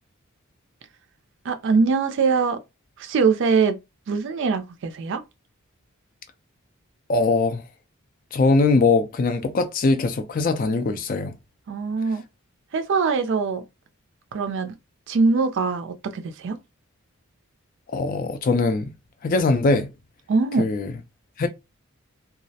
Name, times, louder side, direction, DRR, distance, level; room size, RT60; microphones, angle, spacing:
voice 1, 1.4-2.6 3.0-3.8 4.1-5.2 11.7-12.2 12.7-13.6 14.3-14.7 15.1-16.6 20.3-20.7, right 4 dB, 55° right, 0.4 m, -22 dB
voice 2, 7.1-7.6 8.3-11.3 17.9-18.9 19.2-19.9 20.6-20.9 21.4-21.5, left 3 dB, 40° left, 0.3 m, -21 dB
2.3 x 2.0 x 2.6 m
head